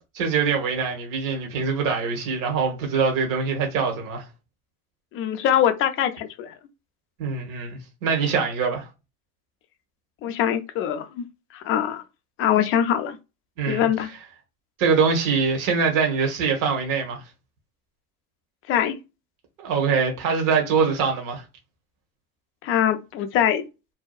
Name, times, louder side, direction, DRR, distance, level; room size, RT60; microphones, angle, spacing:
voice 1, 0.1-4.2 7.2-8.9 13.6-13.9 14.8-17.2 19.6-21.4, right 5 dB, 45° right, 1.0 m, -23 dB
voice 2, 5.1-6.5 10.2-11.3 11.5-12.0 12.4-13.2 13.7-14.1 18.7-19.0 22.6-23.7, left 10 dB, 30° left, 0.4 m, -23 dB
2.7 x 2.2 x 2.3 m
hypercardioid pair, 100°, 44 cm